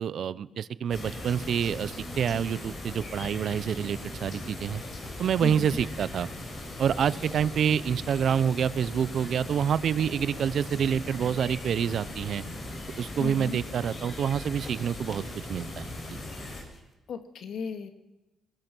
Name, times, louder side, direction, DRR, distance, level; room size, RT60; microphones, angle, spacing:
voice 1, 0.0-4.8 5.2-6.3 6.8-12.4 13.0-15.2 15.5-16.0, right 8 dB, 60° right, 17 dB, 0.7 m, -27 dB
sound 1, 0.9-16.6, left 1 dB, 50° left, 7.7 m, -39 dB
sound 2, 0.9-16.9, left 2 dB, 30° left, 3.8 m, -54 dB
voice 2, 5.4-5.8 13.2-13.6 17.1-17.9, left 5 dB, 65° left, 7 dB, 2.0 m, -35 dB
21.5 x 19.5 x 6.2 m, 1.0 s
cardioid pair, 90°, 0 cm